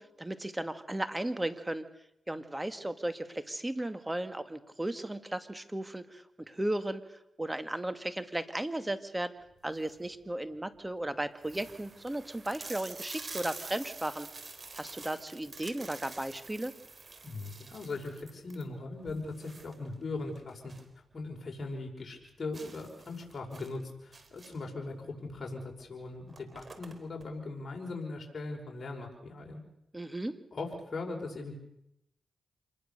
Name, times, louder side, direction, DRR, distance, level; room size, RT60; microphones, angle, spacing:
voice 1, 0.0-1.8 2.3-9.3 9.6-14.3 14.7-16.7 29.9-30.4, right 1 dB, 15° right, 10 dB, 2.2 m, -35 dB
sound 1, 9.6-10.1 10.7-10.8 11.0-11.1 11.4-21.0 21.3-21.4 21.8-21.9 22.5-24.8 25.7-25.8 26.1-27.3, right 3 dB, 50° right, 4.1 m, -48 dB
voice 2, 17.2-20.7 21.1-29.6 30.5-31.5, left 3 dB, 50° left, 0 dB, 5.4 m, -39 dB
27.0 x 20.5 x 6.9 m, 0.80 s
cardioid pair, 50°, 0 cm